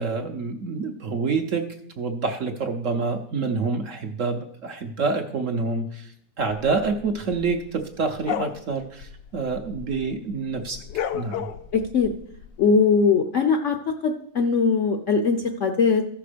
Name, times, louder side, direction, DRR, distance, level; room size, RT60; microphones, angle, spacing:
voice 1, 0.0-1.6 2.0-10.8 11.1-11.5, right 4 dB, 60° right, 5 dB, 0.9 m, -27 dB
sound 1, 6.5-10.2 10.5-12.5, left 9 dB, 85° left, 1.3 m, -33 dB
voice 2, 11.7-12.1 12.6-13.8 14.0-16.1, left 5 dB, 60° left, 5 dB, 0.8 m, -20 dB
14.5 x 6.0 x 5.0 m, 0.69 s
omnidirectional pair, 1.9 m